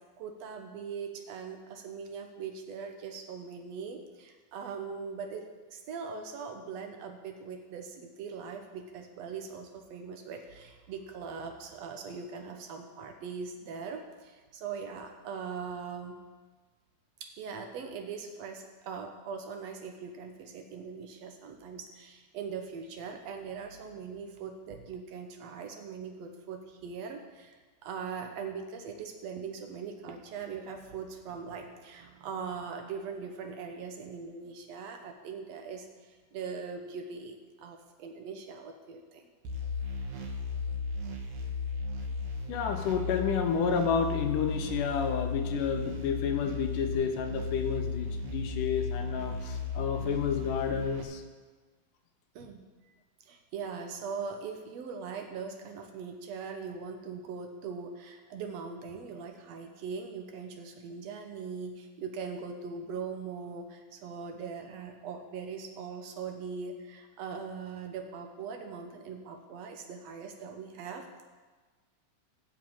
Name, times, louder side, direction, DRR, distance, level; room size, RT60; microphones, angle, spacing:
voice 1, 0.2-16.2 17.2-39.3 52.3-52.6 53.2-71.2, right 5 dB, 85° right, 4 dB, 1.4 m, -41 dB
sound 1, 39.4-51.0, left 4 dB, 60° right, 2.4 m, -35 dB
voice 2, 42.5-51.2, left 6 dB, 70° left, 5 dB, 2.3 m, -30 dB
15.0 x 5.3 x 8.7 m, 1.4 s
omnidirectional pair, 4.3 m